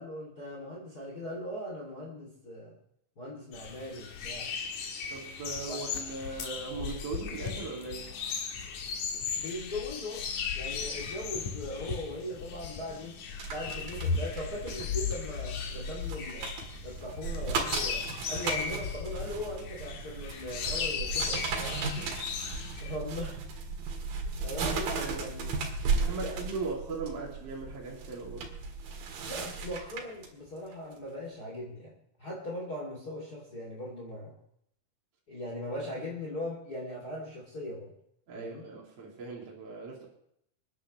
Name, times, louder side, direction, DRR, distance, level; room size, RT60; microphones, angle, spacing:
voice 1, 0.0-2.8 3.2-4.5 5.7-5.8 9.3-10.2 10.5-13.1 13.5-16.5 16.8-21.8 22.8-23.4 24.4-25.5 26.2-26.4 29.3-34.3 35.3-37.9 38.3-38.7, left 1 dB, 30° left, -3 dB, 2.8 m, -39 dB
sound 1, 3.5-23.0, left 6 dB, 60° left, 2.5 m, -36 dB
voice 2, 5.1-8.1 22.0-22.2 22.5-22.7 24.9-25.3 26.0-28.5 38.3-40.0, right 4 dB, 45° right, -5 dB, 3.4 m, -39 dB
sound 2, 13.4-30.3 30.7-30.9, right 4 dB, 75° right, 3.5 m, -36 dB
26.5 x 10.5 x 3.1 m, 0.72 s
omnidirectional pair, 4.1 m